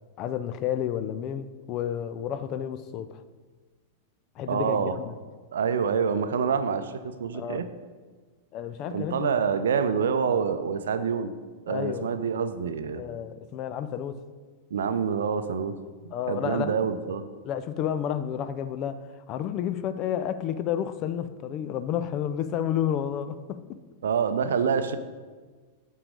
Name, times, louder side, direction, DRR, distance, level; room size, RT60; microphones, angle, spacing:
voice 1, 0.2-3.2 4.4-5.1 7.3-7.6 8.5-9.6 11.7-12.1 12.9-14.2 16.1-16.8 17.4-19.0 19.3-23.8, left 9 dB, 40° left, 0.5 m, -31 dB
voice 2, 4.5-4.9 5.5-7.7 8.9-11.3 11.7-13.0 14.7-15.8 16.0-17.2 24.0-25.0, right 6 dB, 65° right, 0.5 m, -26 dB
8.7 x 4.7 x 5.1 m
figure-of-eight pair, 95°, 0 cm